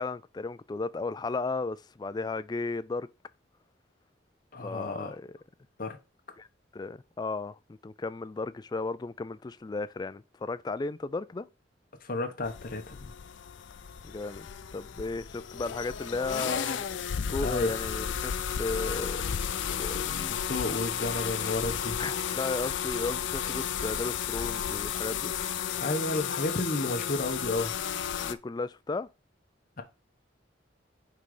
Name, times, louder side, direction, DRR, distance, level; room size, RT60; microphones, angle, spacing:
voice 1, 0.0-3.1 4.6-5.3 6.4-6.5 6.7-11.5 14.0-14.5 14.7-18.3 18.6-20.2 22.0-25.3 28.2-29.1, left 3 dB, 20° left, 0.3 m, -35 dB
voice 2, 4.5-5.1 5.8-6.0 12.0-13.1 17.4-17.7 19.9-22.0 25.7-27.7 29.8-29.9, left 2 dB, 50° left, 1.1 m, -32 dB
sound 1, 12.4-28.3, left 8 dB, 80° left, 0.5 m, -33 dB
5.5 x 3.9 x 4.8 m
head